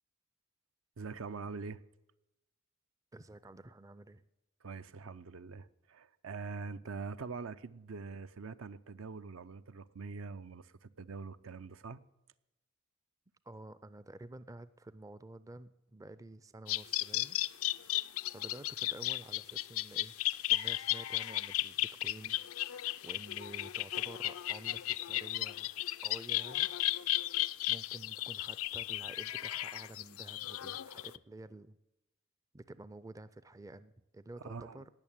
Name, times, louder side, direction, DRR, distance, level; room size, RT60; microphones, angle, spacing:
voice 1, 1.0-1.8 4.6-12.0 34.4-34.8, right 4 dB, 75° right, 0.6 m, -44 dB
voice 2, 3.1-4.2 6.8-6.9 13.4-17.4 18.3-20.1 20.5-22.4 23.0-26.7 27.7-31.8 32.5-34.9, right 2 dB, 15° right, 0.4 m, -50 dB
sound 1, 16.7-31.2, left 16 dB, 85° left, 0.4 m, -35 dB
18.0 x 6.5 x 8.9 m
head